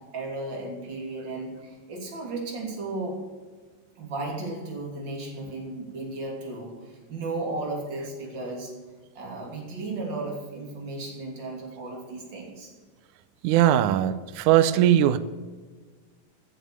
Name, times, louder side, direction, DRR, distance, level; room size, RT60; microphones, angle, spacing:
voice 1, 0.1-3.2 3.9-8.7 9.1-12.7, right 2 dB, 35° right, -1 dB, 3.4 m, -34 dB
voice 2, 13.4-15.2, right 11 dB, 75° right, 12 dB, 1.9 m, -20 dB
16.0 x 7.8 x 6.7 m, 1.4 s
omnidirectional pair, 4.1 m